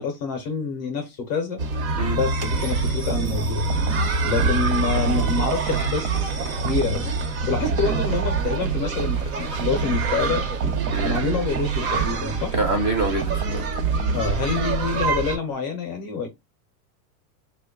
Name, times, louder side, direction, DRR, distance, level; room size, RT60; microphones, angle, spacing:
voice 1, 0.0-1.6 2.1-3.7 4.2-7.0 7.5-10.4 11.0-12.5 14.1-16.3, left 5 dB, 30° left, 0.5 m, -27 dB
sound 1, 1.6-15.4, right 3 dB, 60° right, 1.0 m, -26 dB
sound 2, 2.7-4.2 4.7-7.2 7.7-10.1 10.6-14.4, right 8 dB, 85° right, 0.7 m, -28 dB
voice 2, 12.5-13.6, right 2 dB, 20° right, 0.5 m, -25 dB
3.0 x 2.2 x 3.5 m
supercardioid pair, 165°, 47 cm